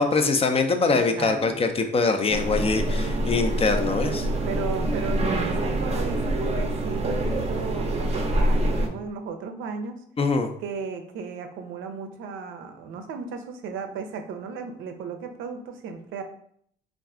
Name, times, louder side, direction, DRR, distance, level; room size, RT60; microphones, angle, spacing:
voice 1, 0.0-4.3 10.2-10.5, left 4 dB, 30° left, 6 dB, 0.4 m, -23 dB
voice 2, 0.8-1.6 4.5-10.0 10.6-16.2, right 5 dB, 85° right, 7 dB, 0.5 m, -35 dB
sound 1, 2.3-8.9, right 1 dB, 35° right, 0.5 m, -25 dB
2.4 x 2.2 x 3.6 m, 0.65 s
cardioid pair, 90°, 20 cm